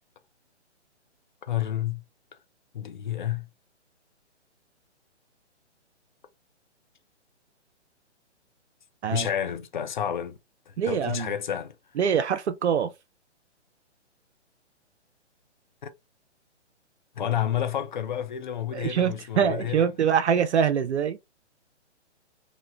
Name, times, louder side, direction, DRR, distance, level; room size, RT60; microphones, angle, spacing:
voice 1, 1.5-2.0 2.7-3.5 9.1-10.4 10.7-11.7 15.8-15.9 17.2-19.9, left 10 dB, 45° left, 0.4 m, -30 dB
voice 2, 10.8-11.3 12.0-12.9 18.7-21.2, right 8 dB, 70° right, 0.5 m, -24 dB
2.9 x 2.1 x 2.3 m
figure-of-eight pair, 135°, 36 cm